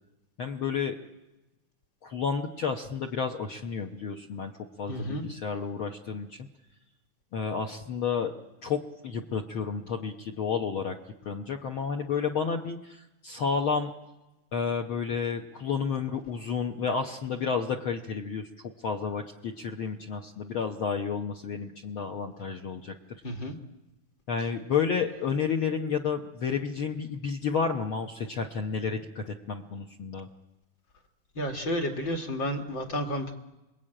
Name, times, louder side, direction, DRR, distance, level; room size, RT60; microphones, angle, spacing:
voice 1, 0.4-1.0 2.0-4.5 4.8-6.5 7.3-8.3 8.6-11.0 11.2-13.9 14.5-18.5 18.8-23.2 24.3-30.3, left 6 dB, 65° left, 3 dB, 1.3 m, -31 dB
voice 2, 4.9-5.2 23.2-23.6 31.4-33.3, equal, 45° left, 3 dB, 1.9 m, -31 dB
29.0 x 21.5 x 8.9 m, 1.0 s
omnidirectional pair, 3.7 m